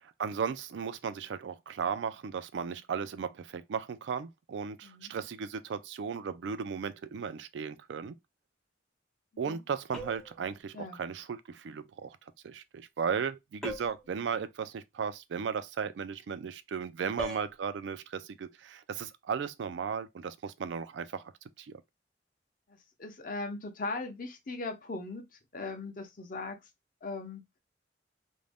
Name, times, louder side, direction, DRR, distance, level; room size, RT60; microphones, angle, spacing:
voice 1, 0.0-8.1 9.4-12.2 12.4-21.3 21.6-21.7, right 6 dB, 80° right, 0.4 m, -36 dB
sound 1, 9.9-10.4 13.6-14.1 17.2-17.5, left 1 dB, 5° left, 0.5 m, -39 dB
voice 2, 17.0-17.3 22.7-26.7 27.0-27.6, left 3 dB, 50° left, 0.7 m, -39 dB
2.5 x 2.1 x 3.3 m
head